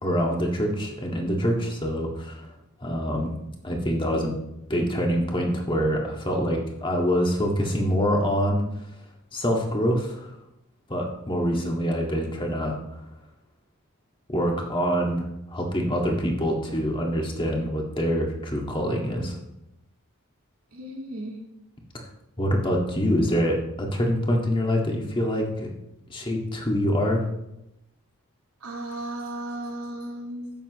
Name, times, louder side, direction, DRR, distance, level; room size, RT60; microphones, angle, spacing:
voice 1, 0.0-2.5 2.8-3.3 3.6-4.4 4.7-8.6 9.3-10.4 10.9-12.8 14.3-19.4 21.9-22.1 22.4-25.7 26.1-27.3, equal, 25° left, 0 dB, 1.8 m, -25 dB
voice 2, 20.7-21.4 28.6-30.5, right 1 dB, 75° right, -2 dB, 2.2 m, -35 dB
12.5 x 8.6 x 3.1 m, 0.86 s
head